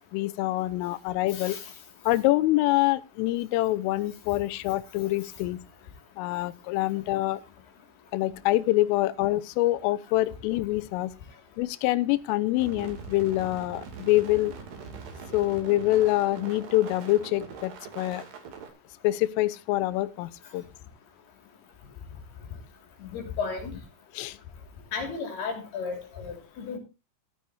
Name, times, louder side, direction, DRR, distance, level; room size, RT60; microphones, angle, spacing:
voice 1, 0.1-1.6 2.1-5.6 6.2-7.4 8.1-11.1 11.6-14.5 15.3-18.2 19.0-20.6 24.2-24.4, left 17 dB, 85° left, 15 dB, 3.4 m, -25 dB
voice 2, 1.3-1.7 23.0-23.8 24.9-26.8, left 5 dB, 55° left, 3 dB, 4.6 m, -34 dB
sound 1, 12.6-18.7, right 5 dB, 60° right, 4.3 m, -42 dB
14.0 x 14.0 x 2.6 m, 0.28 s
omnidirectional pair, 5.7 m